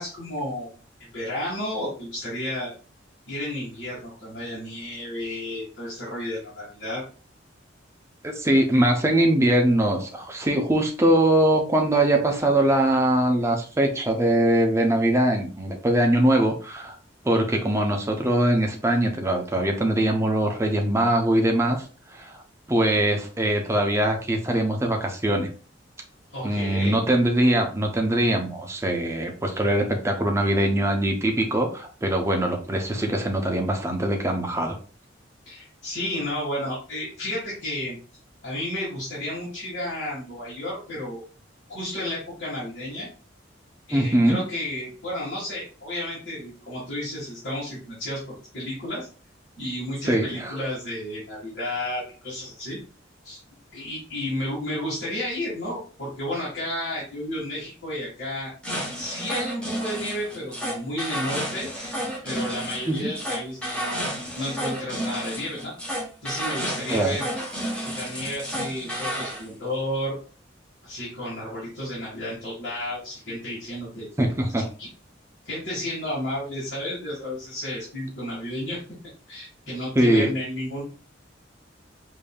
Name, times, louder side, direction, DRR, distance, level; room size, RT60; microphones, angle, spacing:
voice 1, 0.0-2.7 3.3-7.0 26.3-27.0 35.4-38.0 38.4-41.2 41.7-43.1 43.9-49.1 49.6-52.8 53.2-53.4 53.7-58.5 58.9-61.7 62.2-65.7 66.2-67.3 67.8-70.2 70.8-74.1 74.6-74.9 75.4-78.8 79.3-80.8, left 1 dB, 55° left, -8 dB, 1.7 m, -32 dB
voice 2, 8.2-17.0 17.2-21.8 22.1-22.4 22.7-25.5 26.4-34.8 43.9-44.4 50.1-50.5 62.9-63.1 66.9-67.2 74.2-74.7 80.0-80.3, right 1 dB, 15° right, 3 dB, 0.6 m, -22 dB
sound 1, 58.6-69.4, equal, 5° left, 0.9 m, -31 dB
5.1 x 2.7 x 2.3 m, 0.38 s
head